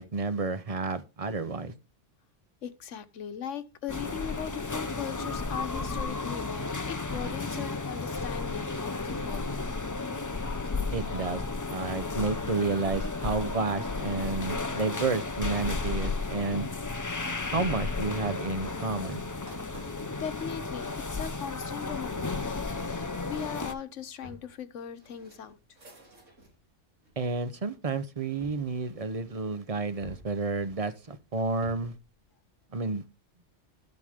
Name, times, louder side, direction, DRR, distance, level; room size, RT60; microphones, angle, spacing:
voice 1, 0.0-1.7 10.9-11.4 11.7-16.7 17.5-19.2 27.2-31.9 32.7-33.0, right 4 dB, 30° right, 0.9 m, -31 dB
voice 2, 2.6-9.5 20.2-25.6, left 8 dB, 80° left, 1.3 m, -39 dB
sound 1, 3.9-23.7, left 3 dB, 20° left, 0.6 m, -33 dB
sound 2, 17.5-26.6 27.0-27.7 28.4-29.5 30.0-32.1, right 1 dB, 85° right, 3.6 m, -52 dB
13.0 x 8.0 x 3.6 m
omnidirectional pair, 1.3 m